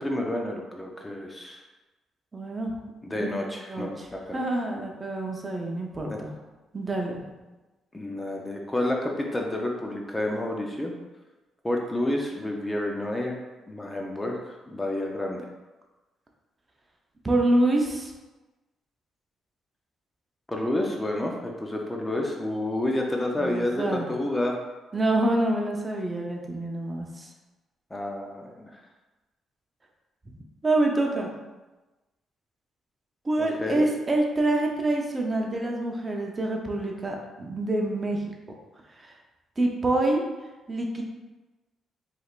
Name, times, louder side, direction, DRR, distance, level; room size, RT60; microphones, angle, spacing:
voice 1, 0.0-1.6 3.0-4.4 7.9-10.9 11.6-13.4 13.7-15.4 20.5-24.6 27.9-28.8 33.4-33.8, left 1 dB, 15° left, 0 dB, 0.5 m, -29 dB
voice 2, 2.3-2.7 3.2-3.3 3.7-4.1 4.3-6.3 6.7-7.1 17.2-18.1 23.4-24.1 24.9-27.3 30.6-31.3 33.2-38.2 39.0-39.1 39.6-40.2 40.7-41.0, right 2 dB, 25° right, 1 dB, 0.6 m, -26 dB
4.6 x 3.3 x 2.4 m, 1.1 s
cardioid pair, 90°, 0 cm